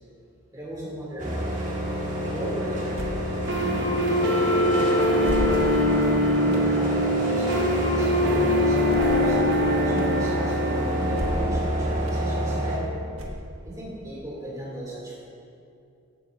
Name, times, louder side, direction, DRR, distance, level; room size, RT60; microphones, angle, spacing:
voice 1, 0.5-1.5 2.3-3.2 3.6-5.7 6.3-12.9 13.6-15.3, right 1 dB, 15° right, -6 dB, 3.1 m, -36 dB
sound 1, 1.2-12.8, equal, 35° right, 2.0 m, -28 dB
sound 2, 2.9-3.3 4.1-4.2 5.2-5.9 6.5-6.7 8.9-9.3 10.0-10.1 11.1-11.6 12.1-12.2 13.1-13.7, equal, 85° right, 1.6 m, -33 dB
sound 3, 3.5-11.5, equal, 55° right, 1.1 m, -23 dB
14.5 x 11.5 x 2.8 m, 2.6 s
head